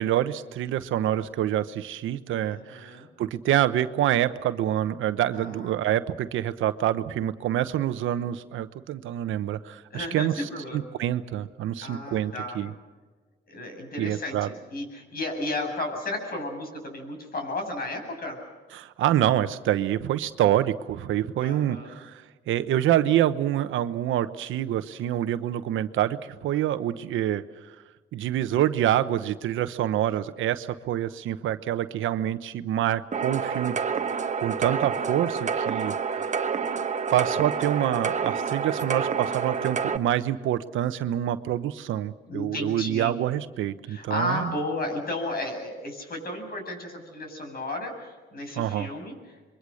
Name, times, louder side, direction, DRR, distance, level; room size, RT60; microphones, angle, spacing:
voice 1, 0.0-12.7 14.0-14.5 18.7-27.4 28.1-33.8 34.4-36.3 37.1-44.5 48.6-48.9, right 12 dB, 80° right, 12 dB, 1.0 m, -26 dB
voice 2, 2.5-3.1 5.3-5.7 9.9-10.9 11.8-12.6 13.5-18.4 21.4-22.1 38.7-38.8 42.3-43.2 43.9-49.1, left 1 dB, 50° left, 4 dB, 7.8 m, -33 dB
sound 1, 33.1-40.0, right 6 dB, 35° right, 1.2 m, -28 dB
27.0 x 23.0 x 6.5 m, 1.3 s
cardioid pair, 90°, 20 cm